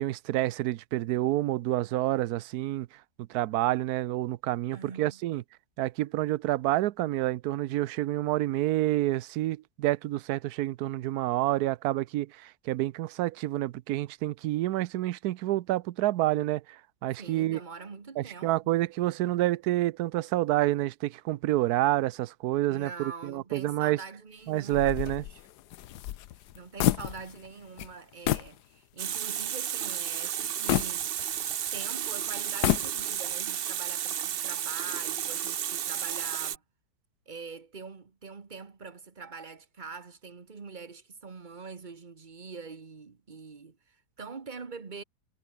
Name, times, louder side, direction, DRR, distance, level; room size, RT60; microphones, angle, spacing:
voice 1, 0.0-2.9 3.3-5.4 5.8-17.6 18.2-24.0 24.5-25.2, right 15 dB, 70° right, 1.0 m, -28 dB
voice 2, 4.7-5.2 17.2-18.6 22.7-25.1 26.5-31.3 31.7-36.6 37.3-45.0, right 4 dB, 30° right, 1.3 m, -44 dB
sound 1, 24.7-27.5 27.8-27.9 28.3-28.6 29.1-29.2 30.7-31.7 32.4-33.3, left 13 dB, 75° left, 1.3 m, -29 dB
Water tap faucet, 29.0-36.6, right 10 dB, 90° right, 0.5 m, -32 dB
omnidirectional pair, 1.8 m